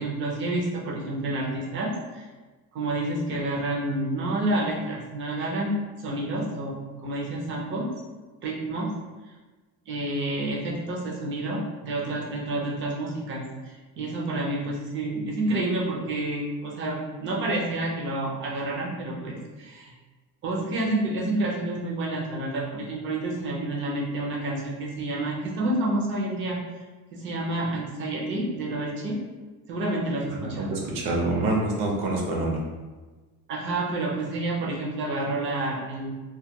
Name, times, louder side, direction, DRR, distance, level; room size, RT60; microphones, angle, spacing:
voice 1, 0.0-2.3 2.7-7.9 8.4-8.9 9.9-19.9 20.4-26.6 27.1-29.2 29.7-30.8 33.5-36.1, right 2 dB, 35° right, -3 dB, 0.5 m, -29 dB
voice 2, 30.3-32.6, right 2 dB, 70° right, -2 dB, 0.7 m, -26 dB
2.3 x 2.2 x 2.7 m, 1.3 s
cardioid pair, 170°, 35 cm